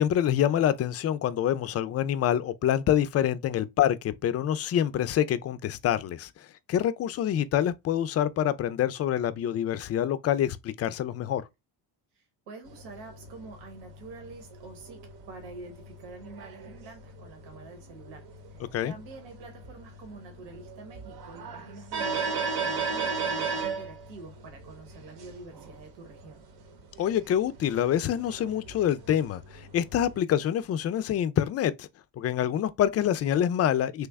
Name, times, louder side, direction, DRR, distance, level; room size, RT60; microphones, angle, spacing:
voice 1, 0.0-6.3 6.7-11.4 18.7-18.9 27.0-31.9 32.2-34.1, left 10 dB, 40° left, 0.4 m, -26 dB
voice 2, 12.1-18.2 18.5-26.4, right 3 dB, 85° right, 1.1 m, -47 dB
sound 1, 12.7-30.2, right 4 dB, 65° right, 0.9 m, -37 dB
3.2 x 2.1 x 3.4 m
cardioid pair, 90°, 42 cm